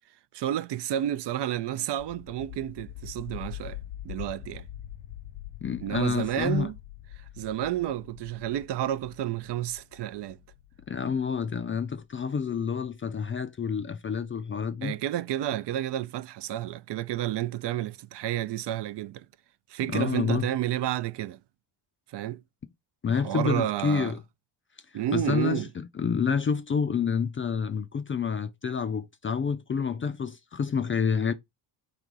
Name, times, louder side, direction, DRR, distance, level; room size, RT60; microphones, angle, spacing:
voice 1, 0.3-3.8 4.0-4.6 5.8-6.8 7.4-10.4 14.8-19.3 19.7-21.4 22.1-22.4 23.2-24.1 24.9-25.7, right 12 dB, 60° right, 0.5 m, -30 dB
sound 1, 2.0-12.7, left 12 dB, 90° left, 0.7 m, -44 dB
voice 2, 5.6-6.7 10.9-14.9 19.9-20.5 23.0-24.2 25.1-31.3, left 6 dB, 25° left, 0.4 m, -28 dB
3.9 x 2.9 x 4.7 m
cardioid pair, 80°, 49 cm